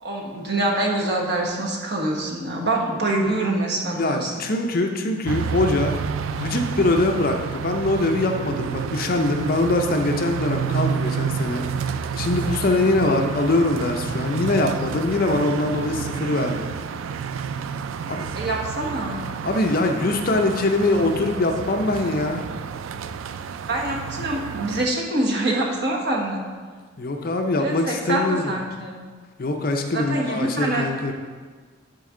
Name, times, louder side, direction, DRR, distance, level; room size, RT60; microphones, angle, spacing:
voice 1, 0.0-4.5 13.0-13.1 18.3-19.2 23.7-26.4 27.6-29.0 29.9-30.9, right 2 dB, 55° right, -2 dB, 1.3 m, -25 dB
voice 2, 3.9-6.0 6.3-11.6 11.9-16.7 18.1-18.3 19.4-22.4 27.0-28.5 29.4-31.1, left 2 dB, 45° left, 4 dB, 0.6 m, -23 dB
sound 1, 5.2-24.9, right 6 dB, 75° right, 0.3 m, -30 dB
10.5 x 4.4 x 3.8 m, 1.5 s
head